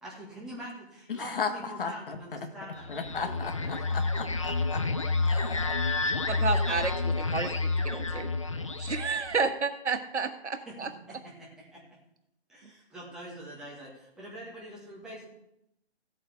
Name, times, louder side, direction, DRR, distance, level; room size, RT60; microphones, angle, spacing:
voice 1, 0.0-4.0 4.3-4.4 5.7-5.8 10.6-11.8 12.5-15.3, right 1 dB, ahead, -6 dB, 1.7 m, -45 dB
voice 2, 1.1-1.5 1.8-2.2 2.9-4.8 5.2-5.7, left 5 dB, 50° left, 7 dB, 1.6 m, -35 dB
sound 1, 2.8-9.4, left 3 dB, 30° left, 0.4 m, -29 dB
voice 3, 6.3-8.3 8.8-10.9, right 4 dB, 90° right, 8 dB, 1.5 m, -31 dB
16.0 x 8.6 x 3.6 m, 0.81 s
hypercardioid pair, 165°, 34 cm